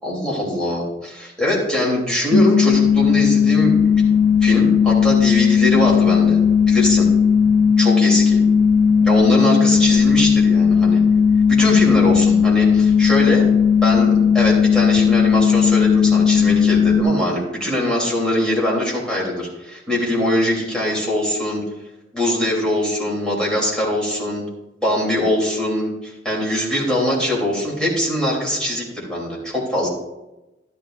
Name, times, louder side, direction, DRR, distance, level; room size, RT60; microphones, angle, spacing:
voice 1, 0.0-4.0 4.4-6.4 6.7-7.1 7.8-8.4 9.0-11.0 11.5-13.4 13.8-21.6 22.1-24.4 24.8-29.9, left 1 dB, 5° left, -4 dB, 3.1 m, -22 dB
sound 1, 2.3-17.0, left 6 dB, 45° left, 0.7 m, -15 dB
12.5 x 11.0 x 2.5 m, 0.99 s
head